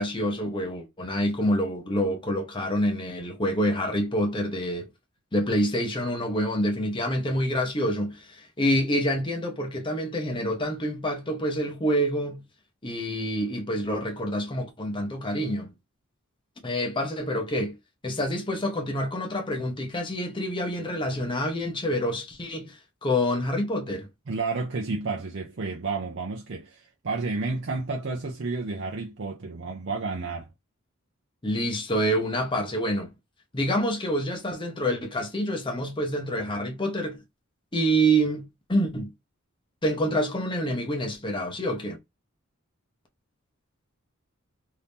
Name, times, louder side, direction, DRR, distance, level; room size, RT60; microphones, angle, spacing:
voice 1, 0.0-4.9 5.3-12.4 12.8-15.7 16.6-17.8 18.0-24.1 31.4-33.1 33.5-37.2 37.7-39.1 39.8-42.0, equal, 25° left, 0.8 m, -27 dB
voice 2, 24.3-30.5, right 3 dB, 55° right, 0.5 m, -31 dB
2.8 x 2.6 x 3.4 m
head